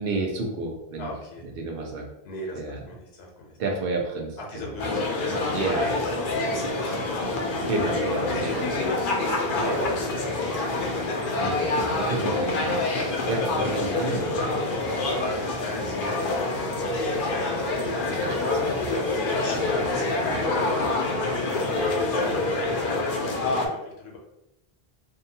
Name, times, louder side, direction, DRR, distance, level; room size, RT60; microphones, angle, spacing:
voice 1, 0.0-1.1 1.5-2.1 2.6-2.8 3.6-4.8 5.5-6.0 7.7-9.9 11.4-15.2 18.1-18.9 19.5-19.6 20.3-20.5, right 3 dB, 70° right, 1 dB, 0.8 m, -31 dB
voice 2, 1.0-1.4 2.2-3.6 4.4-5.7 6.0-7.3 8.3-9.0 9.5-11.2 15.6-17.8 19.1-24.2, left 2 dB, 80° left, -1 dB, 0.9 m, -38 dB
sound 1, 4.8-23.7, left 2 dB, 65° left, 0.7 m, -26 dB
sound 2, 16.5-21.6, right 3 dB, 35° right, 1.2 m, -49 dB
2.6 x 2.2 x 2.7 m, 0.90 s
omnidirectional pair, 1.0 m